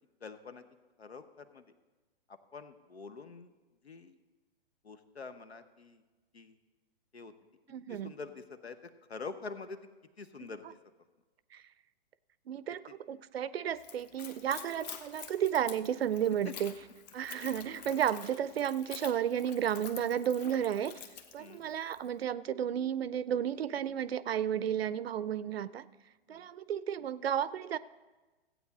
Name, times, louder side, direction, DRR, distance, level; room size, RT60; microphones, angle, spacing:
voice 1, 0.2-0.6 1.0-1.6 2.3-3.5 3.8-4.2 4.8-6.0 6.3-6.6 7.1-7.3 7.9-9.8 10.2-10.6 12.7-13.0 16.4-16.5 21.4-21.6 26.3-26.5, left 4 dB, 90° left, 11 dB, 1.0 m, -46 dB
voice 2, 7.7-8.1 11.5-11.6 12.5-16.7 17.1-21.0 21.3-25.9 26.3-27.8, right 9 dB, 70° right, 17 dB, 0.5 m, -33 dB
Splash splatter / Trickle dribble, 13.7-22.1, left 7 dB, 40° left, 1.0 m, -48 dB
15.0 x 8.6 x 4.1 m, 1.2 s
hypercardioid pair, 125°, 31 cm